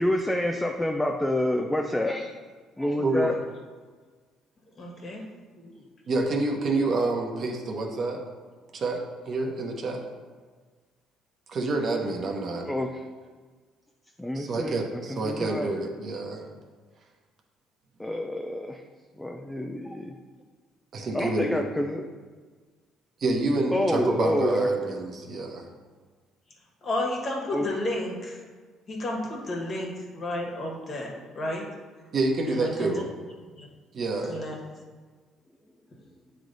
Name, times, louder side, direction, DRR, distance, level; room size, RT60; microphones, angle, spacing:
voice 1, 0.0-2.3 2.8-3.4 12.7-13.0 14.2-15.7 18.0-18.8 19.2-20.1 21.1-22.0 23.7-24.7 27.5-27.7, left 1 dB, 5° left, 2 dB, 0.4 m, -28 dB
voice 2, 3.0-3.4 5.6-8.2 8.7-10.0 11.5-12.7 14.3-16.4 20.9-21.6 23.2-25.7 32.1-33.1 33.9-34.4, right 2 dB, 45° right, 2 dB, 1.0 m, -28 dB
voice 3, 4.8-5.2 26.8-28.4 28.9-31.7 32.5-32.9 33.6-33.7 34.3-34.6, left 1 dB, 40° left, -1 dB, 1.5 m, -32 dB
8.7 x 3.3 x 3.9 m, 1.5 s
cardioid pair, 105°, 0 cm